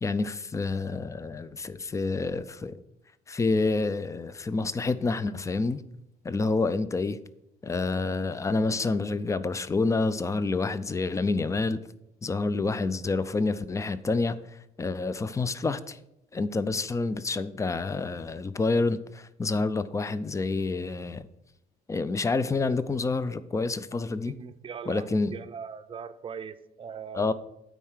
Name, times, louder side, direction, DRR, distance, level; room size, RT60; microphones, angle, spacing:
voice 1, 0.0-2.8 3.3-5.8 6.2-7.2 7.6-11.8 12.2-14.4 14.8-16.0 16.3-21.3 21.9-24.4 24.9-25.4 27.1-27.3, left 3 dB, 20° left, 0.5 m, -28 dB
voice 2, 24.2-27.3, right 6 dB, 30° right, 0.6 m, -40 dB
9.1 x 4.6 x 6.4 m
cardioid pair, 110°, 17 cm